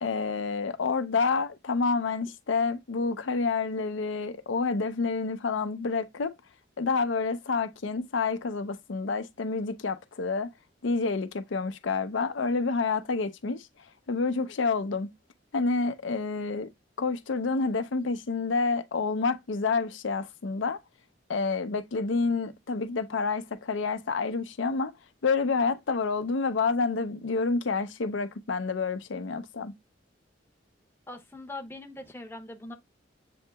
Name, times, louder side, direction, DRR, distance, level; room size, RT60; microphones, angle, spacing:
voice 1, 0.0-6.3 6.8-10.5 10.8-13.7 14.1-15.1 15.5-16.7 17.0-20.8 21.3-24.9 25.2-29.7, left 4 dB, 80° left, 0.6 m, -28 dB
voice 2, 31.1-32.7, left 2 dB, 10° left, 0.7 m, -41 dB
7.7 x 2.8 x 2.2 m
head